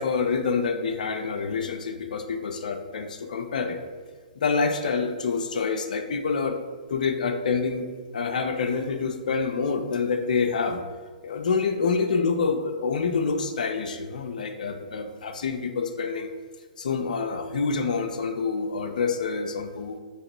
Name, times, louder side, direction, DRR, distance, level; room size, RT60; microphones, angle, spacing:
voice 1, 0.0-3.8 4.4-6.6 6.9-7.9 8.1-10.8 11.2-16.3 16.8-20.0, left 5 dB, 65° left, 5 dB, 0.4 m, -27 dB
2.9 x 2.8 x 4.5 m, 1.5 s
figure-of-eight pair, 120°, 5 cm